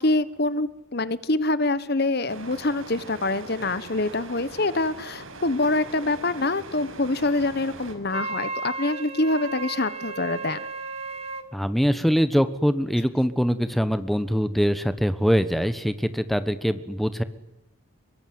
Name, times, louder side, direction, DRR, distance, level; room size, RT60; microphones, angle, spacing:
voice 1, 0.0-10.7, left 2 dB, 50° left, 16 dB, 1.2 m, -25 dB
sound 1, 2.3-8.0, right 2 dB, 70° right, 5.5 m, -41 dB
Wind instrument woodwind instrument, 8.1-11.5, right 3 dB, 30° right, 2.3 m, -34 dB
voice 2, 11.5-17.2, equal, ahead, 12 dB, 1.3 m, -23 dB
25.0 x 23.5 x 9.6 m, 0.94 s
head